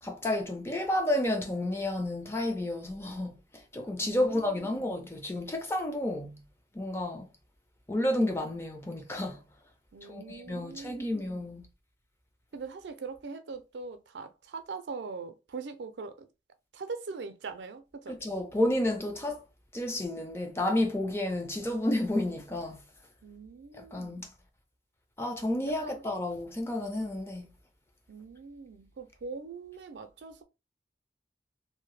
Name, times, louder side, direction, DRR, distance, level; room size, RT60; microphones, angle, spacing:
voice 1, 0.0-3.4 3.7-6.4 6.7-7.3 7.9-9.4 10.1-11.7 18.1-19.4 19.7-22.8 23.8-24.3 25.2-27.5, left 1 dB, 15° left, 0.4 m, -31 dB
voice 2, 4.0-5.0 9.9-11.4 12.5-16.3 16.7-18.2 23.2-24.3 25.7-26.0 28.1-30.4, right 4 dB, 80° right, 0.4 m, -42 dB
2.7 x 2.1 x 3.1 m
head